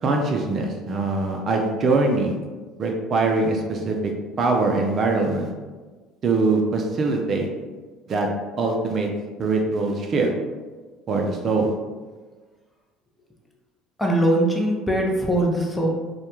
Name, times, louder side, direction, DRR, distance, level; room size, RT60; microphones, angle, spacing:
voice 1, 0.0-2.3 2.8-4.1 4.4-5.5 6.2-7.5 8.1-8.3 8.6-9.1 9.4-10.3 11.1-11.7, right 3 dB, 45° right, 2 dB, 0.4 m, -22 dB
voice 2, 14.0-15.9, right 1 dB, 10° left, -1 dB, 0.5 m, -21 dB
2.1 x 2.1 x 2.9 m, 1.3 s
hypercardioid pair, 75°, 0 cm